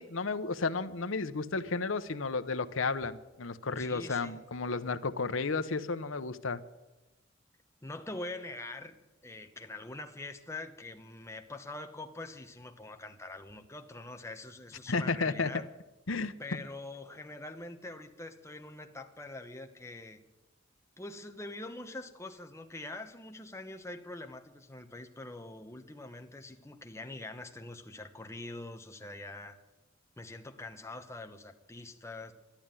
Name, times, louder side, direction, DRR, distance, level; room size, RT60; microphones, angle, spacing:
voice 1, 0.0-6.6 14.9-15.5 16.1-16.3, left 4 dB, 75° left, 11 dB, 0.9 m, -32 dB
voice 2, 3.8-4.4 7.8-9.0 9.2-15.7 16.4-20.2 21.0-29.6 30.2-32.3, left 2 dB, 15° left, 5 dB, 1.1 m, -44 dB
12.5 x 11.5 x 9.0 m, 1.1 s
head